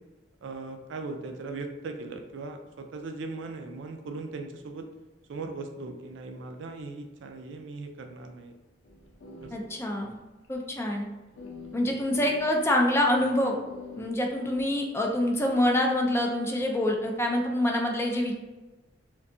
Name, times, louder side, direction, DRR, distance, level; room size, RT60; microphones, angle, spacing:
voice 1, 0.4-4.9 5.3-8.5 9.4-9.5, right 3 dB, 70° right, 5 dB, 0.3 m, -39 dB
sound 1, 8.8-10.2 10.4-10.5 11.4-12.7 13.6-15.6, left 3 dB, 85° left, 0.5 m, -45 dB
voice 2, 9.5-10.1 10.5-11.1 11.7-13.6 14.0-18.4, left 1 dB, 15° left, 1 dB, 0.3 m, -26 dB
2.6 x 2.2 x 2.5 m, 1.1 s
head